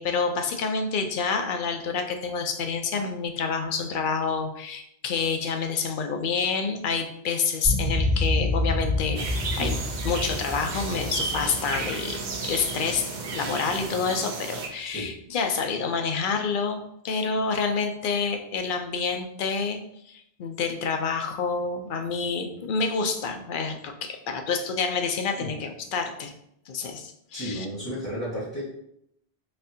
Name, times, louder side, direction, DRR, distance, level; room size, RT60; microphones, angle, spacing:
voice 1, 0.0-9.3 9.6-9.8 10.0-19.8 20.1-26.3 26.7-27.7, left 5 dB, 60° left, 5 dB, 0.6 m, -28 dB
sound 1, 7.6-13.0, left 2 dB, 15° right, 1.4 m, -28 dB
sound 2, 9.2-14.7, right 4 dB, 55° right, 0.6 m, -33 dB
voice 2, 27.3-28.6, equal, 15° left, -11 dB, 1.0 m, -33 dB
4.2 x 2.6 x 2.7 m, 0.75 s
omnidirectional pair, 1.1 m